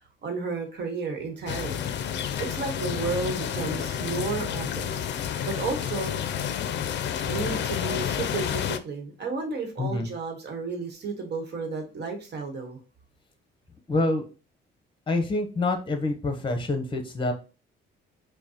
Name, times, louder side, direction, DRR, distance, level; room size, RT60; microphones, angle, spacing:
voice 1, 0.2-1.8 2.4-5.0 5.4-6.2 7.3-12.8, right 4 dB, 60° right, 3 dB, 1.2 m, -32 dB
sound 1, 1.5-8.8, left 9 dB, 65° left, 0.4 m, -30 dB
voice 2, 9.8-10.1 13.9-14.2 15.1-17.3, left 2 dB, 25° left, 6 dB, 0.9 m, -26 dB
5.1 x 2.2 x 2.9 m, 0.34 s
cardioid pair, 90°, 20 cm